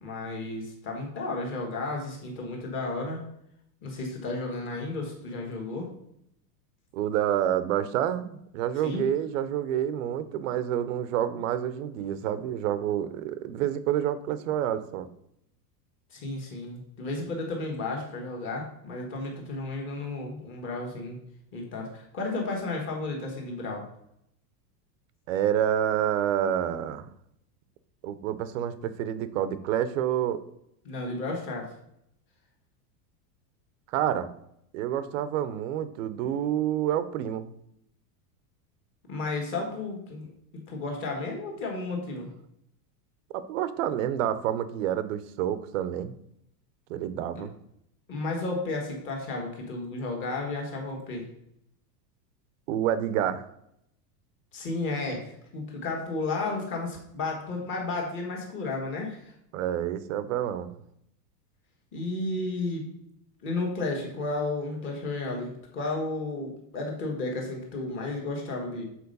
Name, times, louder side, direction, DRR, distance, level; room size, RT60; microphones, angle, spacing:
voice 1, 0.0-3.2 3.8-5.9 8.8-9.0 16.1-21.2 21.5-23.8 30.8-31.7 39.1-40.3 40.7-42.3 47.3-47.4 48.1-51.2 54.5-55.2 55.5-59.3 61.9-62.9 63.4-68.8, left 2 dB, 25° left, 0 dB, 1.6 m, -33 dB
voice 2, 6.9-15.1 25.3-27.1 28.0-30.4 33.9-34.3 34.7-37.5 43.3-46.1 46.9-47.5 52.7-53.5 59.5-60.7, right 10 dB, 55° right, 13 dB, 0.7 m, -28 dB
7.0 x 4.4 x 5.3 m, 0.75 s
supercardioid pair, 180°, 47 cm